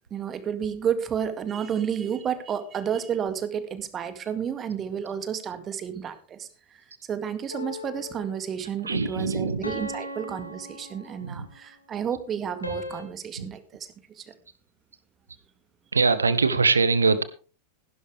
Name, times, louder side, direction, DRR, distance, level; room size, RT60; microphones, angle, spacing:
voice 1, 0.1-13.9 14.2-14.3, right 8 dB, 25° right, 11 dB, 1.9 m, -31 dB
sound 1, 7.5-8.5 9.6-11.5 12.6-13.0, left 1 dB, 85° left, 2.3 m, -37 dB
voice 2, 8.8-9.6 11.2-11.5 13.4-13.5 15.9-17.2, right 4 dB, 75° right, 14 dB, 1.3 m, -22 dB
16.0 x 12.0 x 3.4 m, 0.37 s
figure-of-eight pair, 90°, 0 cm